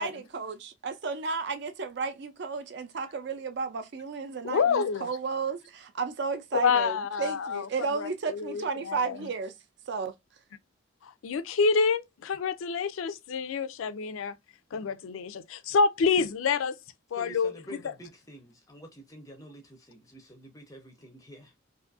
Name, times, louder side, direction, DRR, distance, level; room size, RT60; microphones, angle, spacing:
voice 1, 0.0-9.5 9.9-10.1, right 4 dB, 55° right, 0.4 m, -33 dB
voice 2, 4.4-5.1 6.5-7.7 8.0-9.2 11.0-14.3 14.7-16.8 17.1-17.5, left 5 dB, 80° left, 0.4 m, -27 dB
voice 3, 17.2-21.5, right 1 dB, 15° left, 0.5 m, -48 dB
2.6 x 2.4 x 2.4 m
head